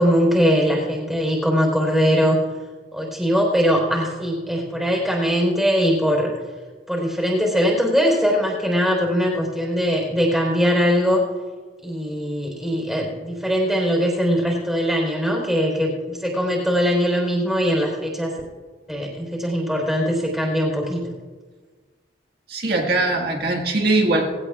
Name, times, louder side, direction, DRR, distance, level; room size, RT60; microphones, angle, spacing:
voice 1, 0.0-2.4 2.9-6.3 6.9-11.2 11.8-18.3 18.9-21.1, equal, ahead, -1 dB, 4.2 m, -21 dB
voice 2, 22.5-24.4, right 2 dB, 60° right, 0 dB, 1.8 m, -21 dB
20.0 x 17.0 x 2.5 m, 1.4 s
head